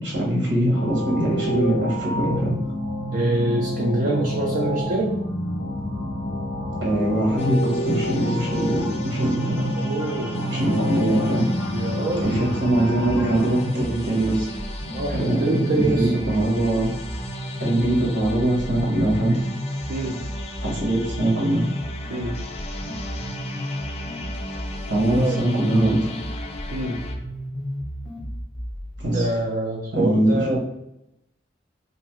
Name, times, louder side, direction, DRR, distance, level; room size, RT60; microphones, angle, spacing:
voice 1, 0.0-2.6 6.8-9.7 10.5-11.5 12.2-14.6 15.1-17.0 17.6-19.5 20.6-21.6 24.9-26.0 29.0-29.3 29.9-30.6, right 1 dB, 85° right, -4 dB, 1.0 m, -22 dB
sound 1, 0.7-13.6, equal, 80° left, 0.6 m, -29 dB
voice 2, 3.1-5.2 9.8-10.6 11.7-12.4 14.9-16.1 19.9-20.2 22.1-22.3 25.0-25.4 26.7-27.0 29.0-30.6, right 2 dB, 55° right, -2 dB, 0.4 m, -25 dB
sound 2, 7.4-27.1, left 1 dB, 35° left, 0.3 m, -38 dB
sound 3, 13.0-29.0, equal, ahead, 0.7 m, -33 dB
2.7 x 2.3 x 3.0 m, 0.85 s
head